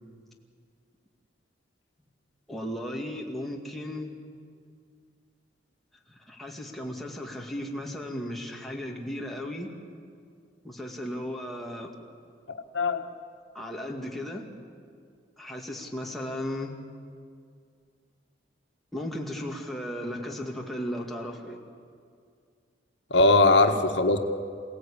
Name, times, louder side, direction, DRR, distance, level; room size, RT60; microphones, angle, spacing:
voice 1, 2.5-4.1 6.1-9.7 10.6-11.9 13.5-14.5 15.4-16.7 18.9-21.6 23.6-23.7, left 1 dB, ahead, -1 dB, 2.3 m, -35 dB
voice 2, 12.7-13.0 23.1-24.2, left 2 dB, 80° left, 5 dB, 1.5 m, -20 dB
28.0 x 17.0 x 8.7 m, 2.2 s
head